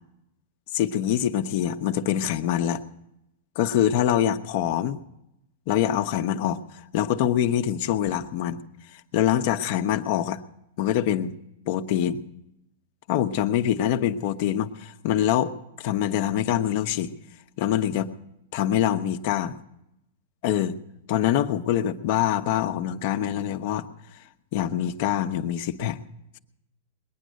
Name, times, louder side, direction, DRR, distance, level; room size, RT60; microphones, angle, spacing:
voice 1, 0.7-2.8 3.6-5.0 5.7-6.6 6.9-8.6 9.1-10.4 10.8-11.3 11.7-12.2 13.1-17.1 17.6-18.1 18.5-19.6 20.4-20.8 21.1-23.9 24.5-26.0, left 11 dB, 50° left, 9 dB, 0.8 m, -24 dB
21.0 x 9.2 x 6.3 m, 0.86 s
hypercardioid pair, 145°, 0 cm